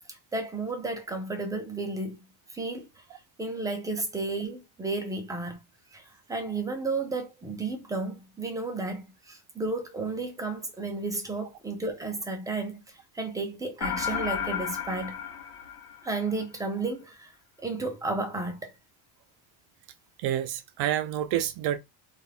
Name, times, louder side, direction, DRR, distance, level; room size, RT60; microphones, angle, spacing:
voice 1, 0.1-2.2 2.5-3.0 3.4-5.6 5.9-15.2 16.0-17.3 17.6-18.7, right 3 dB, 10° right, 0.3 m, -33 dB
sound 1, 13.8-16.4, left 8 dB, 85° left, 1.0 m, -33 dB
voice 2, 20.2-21.8, right 11 dB, 65° right, 0.5 m, -28 dB
2.4 x 2.0 x 3.2 m
cardioid pair, 145°, 49 cm